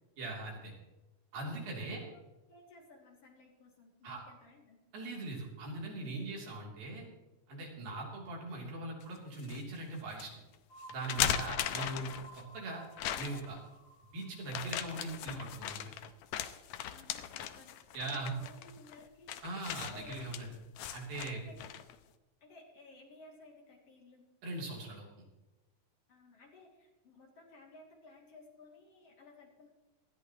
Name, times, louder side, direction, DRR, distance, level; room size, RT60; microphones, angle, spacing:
voice 1, 0.2-0.7 1.3-2.0 4.0-4.2 4.9-7.1 7.5-10.4 10.9-12.8 13.2-13.6 14.1-15.9 17.9-18.3 19.4-20.5 20.9-21.4 24.4-25.3, right 2 dB, 85° right, -2 dB, 5.0 m, -41 dB
voice 2, 2.5-4.8 16.9-17.8 18.0-19.3 19.9-20.2 21.3-21.6 22.4-24.3 26.1-29.7, left 3 dB, 45° left, -1 dB, 3.6 m, -57 dB
sound 1, 9.0-9.6 10.2-10.3 10.9-12.4 13.0-13.6 14.5-22.0, left 10 dB, 75° left, 1.7 m, -38 dB
sound 2, 10.7-16.4, right 2 dB, 20° left, 6.2 m, -54 dB
19.5 x 13.5 x 3.1 m, 1.1 s
omnidirectional pair, 4.0 m